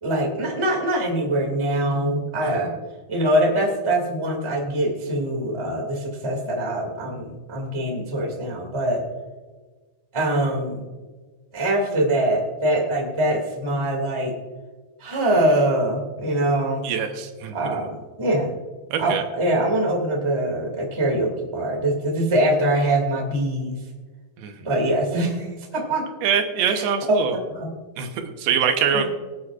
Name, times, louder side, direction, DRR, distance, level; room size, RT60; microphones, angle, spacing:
voice 1, 0.0-2.7 3.1-9.0 10.1-10.8 11.5-14.3 15.0-16.9 17.5-18.5 19.0-23.8 24.6-26.0 26.7-27.8 28.9-29.1, right 1 dB, 10° right, 0 dB, 1.4 m, -23 dB
voice 2, 16.8-17.5 18.9-19.2 24.4-24.7 26.2-27.3 28.0-29.1, right 7 dB, 85° right, 5 dB, 3.0 m, -24 dB
24.0 x 8.3 x 2.5 m, 1.3 s
omnidirectional pair, 4.4 m